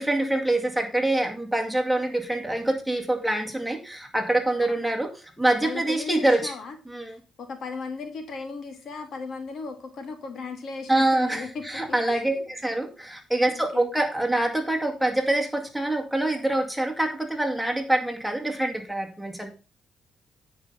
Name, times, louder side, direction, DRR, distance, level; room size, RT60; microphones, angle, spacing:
voice 1, 0.0-5.1 5.4-6.5 6.9-7.2 10.9-19.5, right 1 dB, ahead, 2 dB, 2.1 m, -25 dB
voice 2, 5.6-6.8 7.4-11.6 11.9-12.4 13.5-13.9, left 4 dB, 60° left, 6 dB, 2.1 m, -36 dB
9.5 x 5.3 x 5.5 m, 0.34 s
cardioid pair, 90°, 0 cm